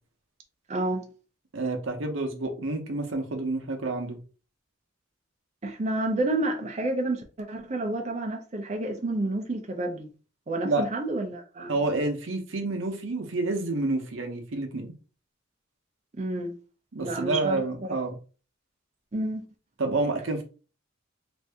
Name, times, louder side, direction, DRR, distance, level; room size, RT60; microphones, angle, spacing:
voice 1, 0.7-1.1 5.6-10.1 10.5-11.7 16.2-16.5 17.0-17.6 19.1-19.4, right 2 dB, 35° right, 0.5 m, -29 dB
voice 2, 1.5-4.2 10.6-10.9 11.7-14.9 16.9-18.1 19.8-20.4, right 2 dB, 75° right, 0.8 m, -29 dB
2.7 x 2.6 x 3.4 m
head